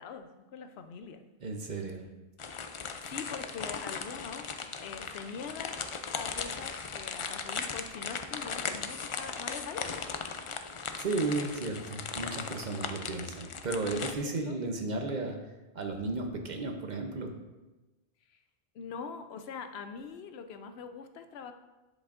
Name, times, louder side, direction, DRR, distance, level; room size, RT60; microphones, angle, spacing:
voice 1, 0.0-1.2 3.1-4.5 4.8-10.2 14.2-14.6 18.3-18.4 18.7-21.5, left 6 dB, 80° left, 8 dB, 0.8 m, -43 dB
voice 2, 1.4-2.0 11.0-15.4 15.7-17.3, right 3 dB, 50° right, 3 dB, 0.8 m, -34 dB
sound 1, 2.4-14.1, left 5 dB, 55° left, 0.3 m, -38 dB
10.5 x 5.3 x 2.5 m, 1.1 s
omnidirectional pair, 1.0 m